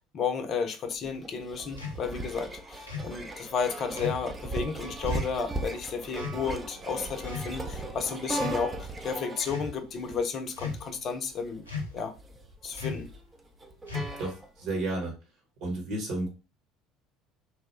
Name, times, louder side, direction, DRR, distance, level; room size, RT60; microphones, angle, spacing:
voice 1, 0.1-11.6 11.9-12.1 12.6-13.1, left 5 dB, 40° left, 0.5 m, -32 dB
sound 1, 0.9-14.8, right 2 dB, 20° right, 0.5 m, -38 dB
sound 2, 1.8-2.0 2.9-3.2 4.0-4.3 5.1-5.3 6.2-6.5 7.2-7.8 8.3-8.7 9.4-9.7 10.6-11.0 11.7-12.1 12.8-13.1 13.9-14.3, left 4 dB, 90° left, 0.5 m, -36 dB
voice 2, 14.2-15.1 15.6-16.3, right 2 dB, 55° right, 1.1 m, -32 dB
2.9 x 2.1 x 3.2 m
figure-of-eight pair, 60°, 0 cm